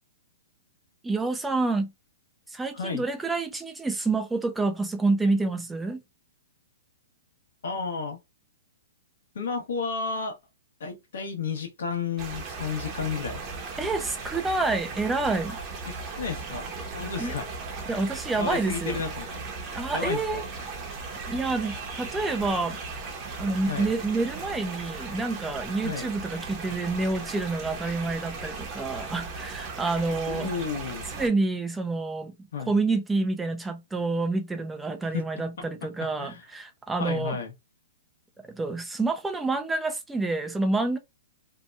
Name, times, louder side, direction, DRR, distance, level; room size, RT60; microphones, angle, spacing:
voice 1, 1.0-1.9 2.5-6.0 13.8-15.6 17.2-17.3 17.9-19.0 19.7-20.4 21.3-22.8 23.4-30.5 31.1-32.3 32.7-37.4 38.4-41.0, right 3 dB, 5° right, 0.3 m, -28 dB
voice 2, 7.6-8.2 9.3-10.4 10.8-13.4 15.9-17.4 18.4-19.3 19.9-20.4 23.7-23.9 25.8-26.1 30.3-31.1 32.5-32.7 35.1-35.2 35.6-35.7 36.2-36.4 37.0-37.5, left 5 dB, 75° left, 1.0 m, -32 dB
sound 1, 12.2-31.3, right 4 dB, 25° right, 0.7 m, -37 dB
2.8 x 2.2 x 2.4 m
hypercardioid pair, 150°, 0 cm